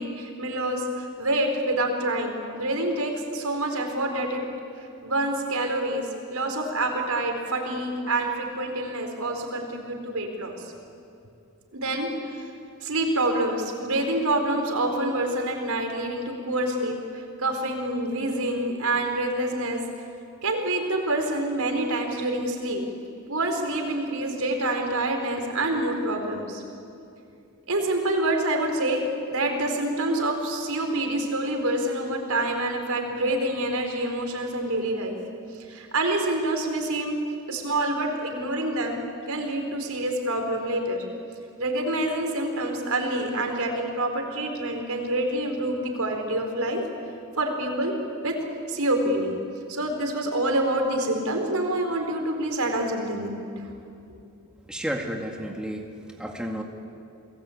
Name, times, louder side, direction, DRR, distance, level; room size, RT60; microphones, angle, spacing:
voice 1, 0.0-4.4 5.0-10.7 11.7-12.5 12.8-17.0 17.4-19.8 20.4-22.8 23.3-26.6 27.7-29.0 29.3-35.2 35.7-37.2 37.5-41.0 41.6-46.8 47.4-47.9 48.2-48.4 48.7-49.4 49.7-53.5, right 1 dB, 80° right, 3 dB, 4.5 m, -27 dB
voice 2, 54.7-56.6, equal, 5° right, 1 dB, 1.9 m, -32 dB
29.0 x 20.0 x 8.7 m, 2.6 s
head